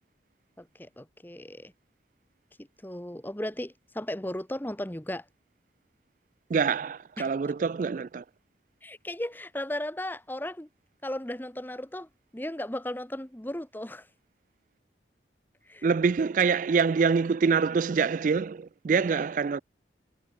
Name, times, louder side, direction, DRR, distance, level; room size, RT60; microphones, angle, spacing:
voice 1, 0.6-1.7 2.6-5.2 7.2-7.3 8.8-10.7 11.0-14.1 15.7-15.9 19.0-19.2, left 1 dB, 10° left, 1.0 m, -36 dB
voice 2, 6.5-8.2 15.8-19.6, right 5 dB, 45° right, 0.3 m, -25 dB
head